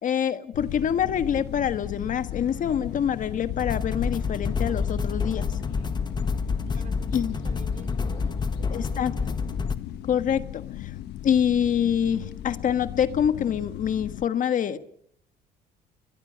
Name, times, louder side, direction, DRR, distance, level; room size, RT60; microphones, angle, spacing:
voice 1, 0.0-5.5 7.1-7.3 8.7-9.1 10.1-10.9 11.2-14.8, left 8 dB, 50° left, 11 dB, 1.5 m, -25 dB
sound 1, 0.5-14.3, left 13 dB, 80° left, 1.2 m, -36 dB
sound 2, 3.6-9.8, left 4 dB, 25° left, 1.5 m, -29 dB
voice 2, 6.7-9.5, right 6 dB, 50° right, 8 dB, 4.5 m, -50 dB
30.0 x 22.5 x 5.8 m, 0.64 s
cardioid pair, 110°, 17 cm